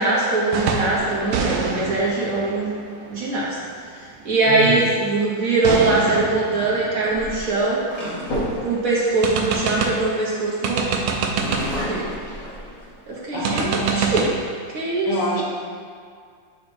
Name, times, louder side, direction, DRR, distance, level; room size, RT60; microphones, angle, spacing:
voice 1, 0.0-2.7 3.1-3.5 4.2-7.8 8.6-10.9 11.9-12.1 13.1-14.3 14.7-15.1, right 2 dB, 55° right, -5 dB, 1.2 m, -21 dB
sound 1, 0.5-1.0 1.3-3.9 5.6-8.4 8.7-8.8 9.2-10.1 10.6-11.8 13.4-14.3, right 5 dB, 80° right, 1.3 m, -26 dB
sound 2, 0.9-2.5 5.5-5.8 6.8-10.5 11.0-13.2 13.7-13.8 14.1-14.7, equal, 50° left, 2.0 m, -32 dB
voice 2, 13.3-14.1 15.1-15.4, right 2 dB, 70° left, -5 dB, 1.8 m, -26 dB
8.5 x 2.9 x 4.4 m, 2.1 s
omnidirectional pair, 2.0 m